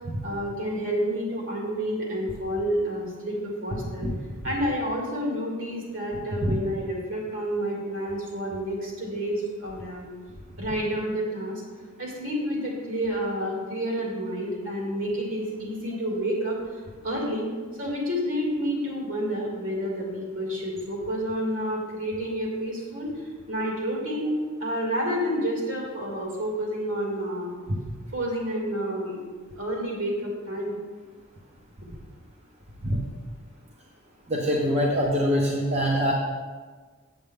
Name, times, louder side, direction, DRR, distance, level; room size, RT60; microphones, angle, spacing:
voice 1, 0.2-4.1 4.4-10.0 10.6-11.6 12.0-16.6 17.0-17.5 17.8-23.1 23.5-24.3 24.6-27.6 28.1-29.2 29.6-30.8, equal, 70° right, -3 dB, 2.6 m, -29 dB
voice 2, 34.3-36.1, equal, 30° right, -2 dB, 0.8 m, -24 dB
7.9 x 7.9 x 3.6 m, 1.4 s
head